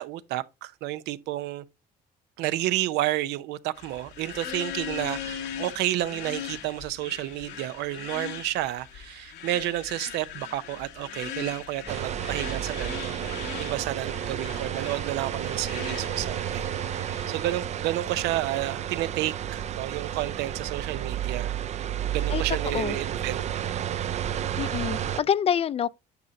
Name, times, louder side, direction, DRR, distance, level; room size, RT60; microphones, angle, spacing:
voice 1, 0.0-1.6 2.4-13.3 13.6-21.5 22.1-24.0, right 14 dB, 90° right, 0.6 m, -31 dB
sound 1, 3.7-17.6, left 9 dB, 90° left, 1.5 m, -40 dB
sound 2, 11.9-25.2, right 10 dB, 40° right, 0.4 m, -31 dB
voice 2, 22.3-22.9 24.6-25.9, left 8 dB, 35° left, 0.4 m, -27 dB
9.4 x 5.7 x 2.6 m
cardioid pair, 110°, 17 cm